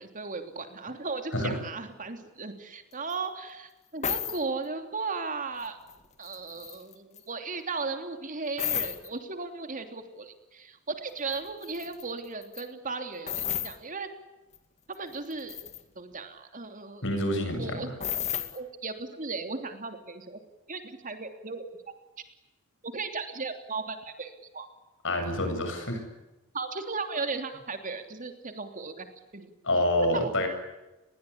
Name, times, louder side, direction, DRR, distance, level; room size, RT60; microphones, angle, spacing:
voice 1, 0.0-5.8 6.2-14.1 14.9-15.6 15.9-17.1 17.6-17.9 18.5-20.4 20.7-21.7 22.8-24.7 26.5-29.1 29.3-29.8 30.1-30.3, right 4 dB, 35° right, 6 dB, 3.1 m, -36 dB
sound 1, 3.1-3.2 4.0-4.4 5.6-5.9 6.2-7.2 8.6-9.1 11.3-11.4 11.6-12.0 12.4-12.7 13.3-13.8 14.5-14.6 14.9-15.8 18.0-18.6, left 9 dB, 30° left, 2.1 m, -32 dB
voice 2, 17.0-17.9 25.0-26.0 29.6-30.5, left 1 dB, 60° left, 6 dB, 7.8 m, -27 dB
29.5 x 21.5 x 8.7 m, 1.0 s
head